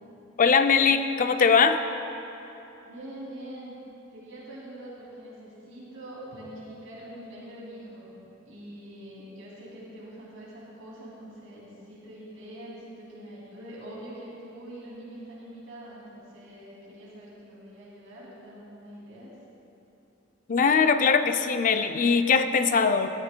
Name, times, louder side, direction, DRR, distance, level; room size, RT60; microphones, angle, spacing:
voice 1, 0.4-1.8 20.5-23.1, left 5 dB, 40° left, 9 dB, 0.4 m, -21 dB
voice 2, 2.8-3.8 4.1-8.2 8.4-19.3, right 1 dB, 80° right, -7 dB, 2.6 m, -44 dB
13.5 x 13.0 x 2.2 m, 2.9 s
head